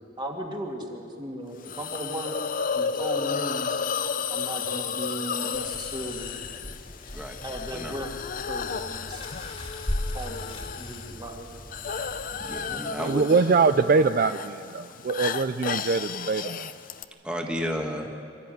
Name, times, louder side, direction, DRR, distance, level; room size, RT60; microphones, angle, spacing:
voice 1, 0.2-2.4 2.7-3.8 4.3-6.4 7.4-8.1 8.5-9.2 10.1-11.5, right 1 dB, 25° right, 1 dB, 2.4 m, -36 dB
Hiss, 1.6-17.0, left 6 dB, 45° left, 0.6 m, -33 dB
sound 1, 5.5-12.8, left 1 dB, 30° left, 2.1 m, -38 dB
voice 2, 7.7-8.0 12.3-13.4 17.2-18.1, equal, 5° right, 1 dB, 1.5 m, -32 dB
voice 3, 13.0-16.7, right 4 dB, 50° right, 10 dB, 0.4 m, -23 dB
24.5 x 13.0 x 9.3 m, 2.4 s
head